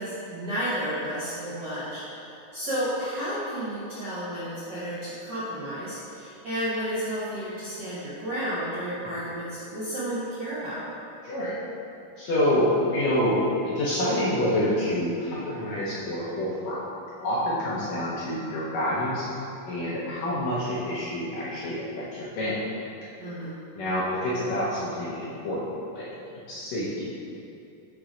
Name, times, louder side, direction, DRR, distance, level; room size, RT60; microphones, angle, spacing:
voice 1, 0.0-10.8 23.2-23.5, equal, 65° right, -12 dB, 1.0 m, -32 dB
voice 2, 11.2-11.5 12.2-16.8 17.2-19.3 19.7-22.6 23.8-26.1 26.5-27.2, left 1 dB, 70° left, -8 dB, 1.8 m, -27 dB
5.8 x 3.7 x 5.0 m, 2.7 s
omnidirectional pair, 3.8 m